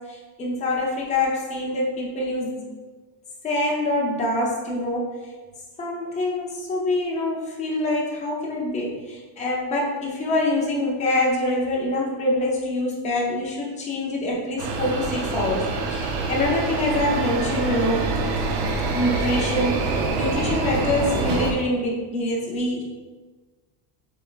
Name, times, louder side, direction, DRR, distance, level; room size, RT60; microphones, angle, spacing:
voice 1, 0.1-2.6 3.4-5.1 5.8-18.1 18.9-22.8, left 1 dB, 15° left, -3 dB, 0.4 m, -25 dB
sound 1, 14.6-21.5, right 3 dB, 50° right, 0.6 m, -26 dB
6.7 x 3.3 x 2.3 m, 1.3 s
cardioid pair, 175°, 50 cm